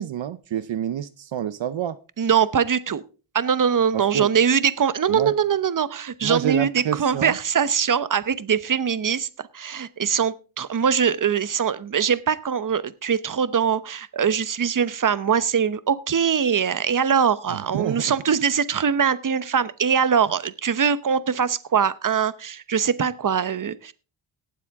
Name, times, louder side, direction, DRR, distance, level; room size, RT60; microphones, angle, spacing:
voice 1, 0.0-2.0 3.9-4.3 5.1-5.3 6.2-7.3 17.5-18.1, right 10 dB, 65° right, 14 dB, 0.7 m, -28 dB
voice 2, 2.2-3.0 3.3-23.9, right 7 dB, 40° right, 15 dB, 0.9 m, -22 dB
18.0 x 7.6 x 3.6 m, 0.35 s
cardioid pair, 70°, 50 cm